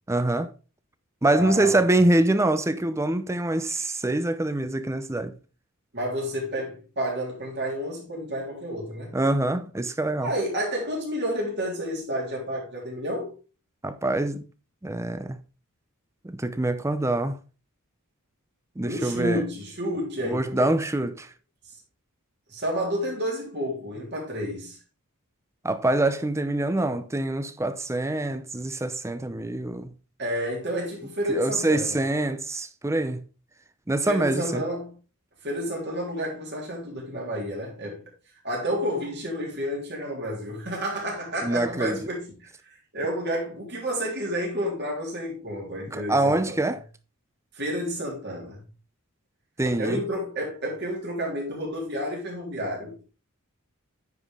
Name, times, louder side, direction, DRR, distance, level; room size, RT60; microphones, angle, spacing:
voice 1, 0.1-0.5 1.2-5.3 9.1-10.3 13.8-14.5 14.8-15.4 16.2-17.4 18.8-19.4 20.2-21.3 25.6-29.9 31.3-33.2 33.9-34.6 41.4-42.0 45.9-46.8 49.6-50.0, right 2 dB, 15° right, 0.6 m, -25 dB
voice 2, 1.3-1.8 5.9-9.1 10.2-13.4 18.8-20.7 22.5-24.8 30.2-32.0 34.1-34.9 35.4-38.0 38.4-46.6 47.5-48.6 49.7-53.0, equal, 50° right, 3.5 m, -30 dB
9.4 x 5.2 x 3.7 m
head